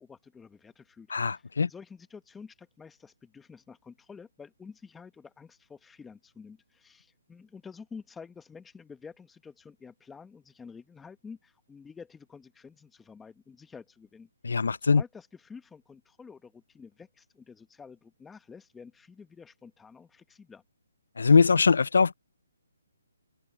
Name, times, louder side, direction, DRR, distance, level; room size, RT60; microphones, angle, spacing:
voice 1, 0.0-20.6, left 5 dB, 5° left, 1.2 m, -49 dB
voice 2, 1.1-1.7 14.4-15.0 21.2-22.1, left 5 dB, 80° left, 0.4 m, -22 dB
hypercardioid pair, 160°, 0 cm